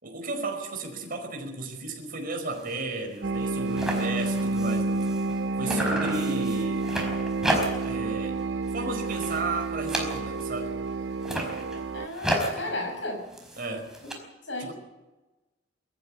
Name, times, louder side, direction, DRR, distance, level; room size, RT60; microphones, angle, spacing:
voice 1, 0.0-5.1 5.6-6.9 7.8-8.4 8.7-10.8 13.6-13.9 14.6-14.7, right 3 dB, 50° right, 3 dB, 5.1 m, -34 dB
sound 1, 2.5-2.8 3.1-3.2 3.4-5.4 5.7-8.0 8.4-8.7 9.0-10.6 11.1-14.1, right 1 dB, 5° right, 4.8 m, -32 dB
sound 2, 3.2-12.1, right 3 dB, 70° right, 0.7 m, -29 dB
voice 2, 5.6-6.0 11.9-13.3 14.5-14.7, left 2 dB, 75° left, 3 dB, 7.1 m, -34 dB
23.0 x 14.5 x 8.7 m, 1.1 s
head